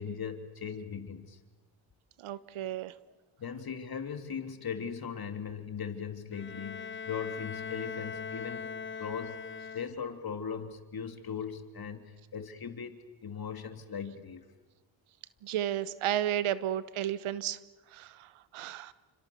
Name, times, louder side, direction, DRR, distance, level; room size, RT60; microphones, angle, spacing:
voice 1, 0.0-1.4 3.4-8.7 9.0-14.4, left 6 dB, 45° left, 7 dB, 3.0 m, -39 dB
voice 2, 2.2-2.9 15.4-17.6 17.9-18.9, right 11 dB, 80° right, 16 dB, 1.2 m, -33 dB
Bowed string instrument, 6.3-10.3, left 6 dB, 25° left, 0.8 m, -41 dB
29.0 x 26.0 x 7.1 m, 1.2 s
cardioid pair, 70°, 48 cm